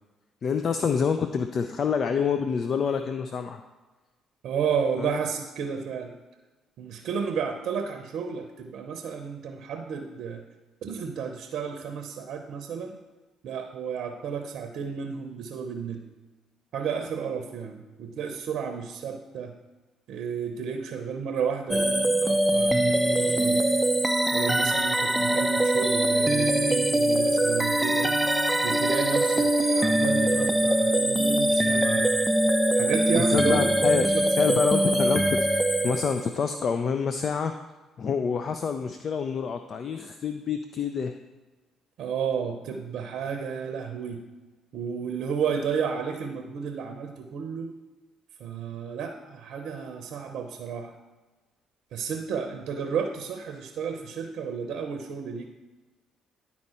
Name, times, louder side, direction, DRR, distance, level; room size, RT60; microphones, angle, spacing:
voice 1, 0.4-3.6 5.0-5.2 33.2-34.0 34.4-35.4 35.8-37.5 38.0-41.1, left 6 dB, 50° left, 8 dB, 0.4 m, -27 dB
voice 2, 4.4-6.1 6.8-10.4 10.8-13.0 13.4-16.0 16.7-19.5 20.1-23.6 24.3-28.2 28.6-32.1 32.7-33.7 34.0-34.6 42.0-44.2 44.7-47.7 48.4-50.9 51.9-55.5, right 6 dB, 70° right, 5 dB, 0.7 m, -32 dB
sound 1, 21.7-36.5, right 1 dB, 5° right, 0.4 m, -23 dB
11.0 x 4.2 x 4.3 m, 1.2 s
supercardioid pair, 65°, 0 cm